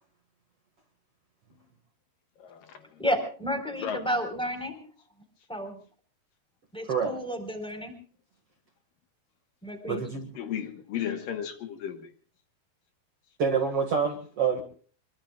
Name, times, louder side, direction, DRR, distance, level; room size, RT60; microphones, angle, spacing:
voice 1, 2.4-2.9 3.8-4.0 10.4-12.1, left 9 dB, 70° left, 6 dB, 2.9 m, -34 dB
voice 2, 3.0-4.8 5.5-5.8 6.7-7.9 9.6-10.0, equal, ahead, 6 dB, 3.9 m, -31 dB
voice 3, 9.9-10.3 13.4-14.6, right 6 dB, 45° right, 5 dB, 2.4 m, -27 dB
25.5 x 23.5 x 2.4 m, 0.43 s
omnidirectional pair, 4.4 m